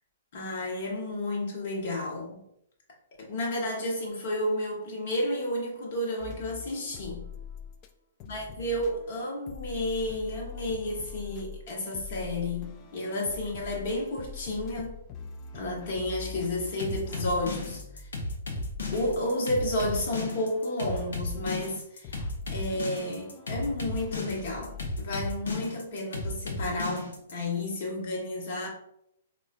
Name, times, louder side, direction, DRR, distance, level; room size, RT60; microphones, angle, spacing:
voice 1, 0.3-2.4 3.2-7.2 8.2-15.0 15.5-18.1 18.9-22.2 22.5-28.7, left 1 dB, 55° left, -1 dB, 1.2 m, -31 dB
sound 1, 6.2-7.9 8.2-24.9, left 6 dB, 35° left, 0.3 m, -44 dB
sound 2, 16.8-27.3, left 2 dB, 70° left, 0.7 m, -34 dB
4.2 x 2.4 x 2.4 m, 0.77 s
figure-of-eight pair, 120°, 0 cm